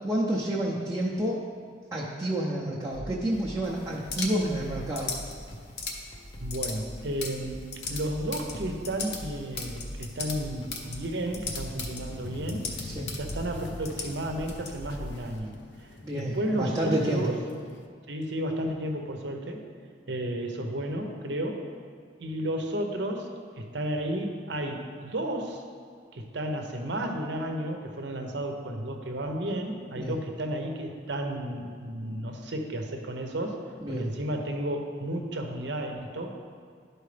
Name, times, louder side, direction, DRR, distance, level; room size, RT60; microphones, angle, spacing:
voice 1, 0.0-1.4 1.9-5.1 12.8-13.1 16.0-17.4 30.0-30.2 33.8-34.1, right 1 dB, 15° right, -6 dB, 0.6 m, -29 dB
sound 1, 2.9-15.2, equal, 25° left, 0.6 m, -44 dB
sound 2, 3.6-15.4, left 4 dB, 60° left, 0.9 m, -39 dB
voice 2, 6.4-7.6 7.9-12.7 13.2-15.6 16.1-17.4 18.1-19.6 20.1-21.7 22.2-25.6 26.1-36.3, right 1 dB, 75° right, 3 dB, 0.8 m, -32 dB
sound 3, 12.1-17.9, left 2 dB, 80° left, 0.5 m, -44 dB
11.5 x 4.5 x 3.3 m, 2.1 s
head